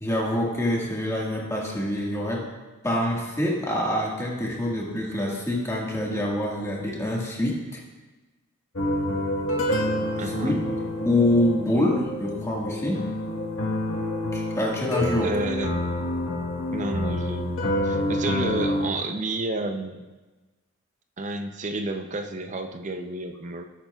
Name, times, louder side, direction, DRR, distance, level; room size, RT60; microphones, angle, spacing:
voice 1, 0.0-2.5 2.8-7.8 9.9-10.0 10.2-10.6 11.1-13.1 14.3-15.3, left 1 dB, 15° left, -3 dB, 1.6 m, -26 dB
sound 1, 8.8-18.9, left 1 dB, 70° left, 1.3 m, -28 dB
voice 2, 10.2-10.6 15.2-15.8 16.7-20.0 21.2-23.6, right 2 dB, 35° right, 6 dB, 0.5 m, -31 dB
18.5 x 8.7 x 2.3 m, 1.2 s
head